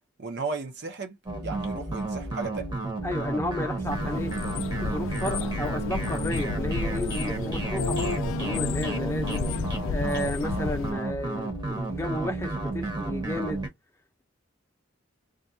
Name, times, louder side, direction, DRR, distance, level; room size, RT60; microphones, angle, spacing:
voice 1, 0.2-1.2 1.4-2.7, right 4 dB, 60° right, 0.7 m, -34 dB
sound 1, 1.3-13.7, right 2 dB, 25° right, 0.8 m, -32 dB
voice 2, 3.0-4.3 4.8-9.5 9.9-13.7, left 1 dB, 15° left, 0.6 m, -32 dB
sound 2, 3.9-10.9, left 5 dB, 90° left, 0.3 m, -32 dB
2.4 x 2.2 x 2.6 m
head